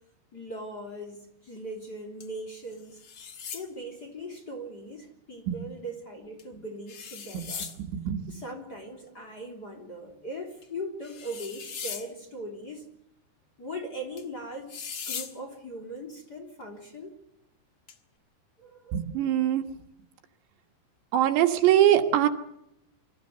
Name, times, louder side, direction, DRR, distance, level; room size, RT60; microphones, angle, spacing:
voice 1, 0.3-3.0 3.5-7.7 8.3-12.8 13.6-17.1 18.6-19.0, equal, 25° left, 2 dB, 3.3 m, -40 dB
sound 1, 2.2-2.3 2.7-3.7 6.4-6.5 6.9-7.8 10.6-10.7 11.0-12.1 14.2-14.3 14.7-15.3 17.9-18.0, left 6 dB, 65° left, 1.3 m, -38 dB
voice 2, 7.9-8.2 18.9-19.6 21.1-22.3, right 11 dB, 75° right, 6 dB, 3.6 m, -22 dB
25.5 x 14.5 x 8.1 m, 0.79 s
omnidirectional pair, 5.1 m